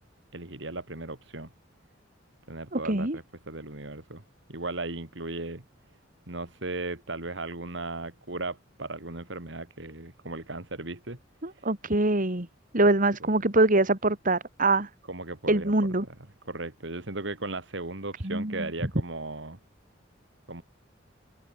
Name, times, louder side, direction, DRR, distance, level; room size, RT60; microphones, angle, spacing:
voice 1, 0.3-1.5 2.5-4.2 4.5-5.6 6.3-11.2 11.5-11.7 13.2-13.3 15.1-15.7 16.5-19.6 20.5-20.6, right 2 dB, 70° right, 3.2 m, -36 dB
voice 2, 2.7-3.2 11.4-12.5 12.7-14.9 15.5-16.0 18.2-18.7, right 2 dB, 45° right, 2.7 m, -24 dB
open air
head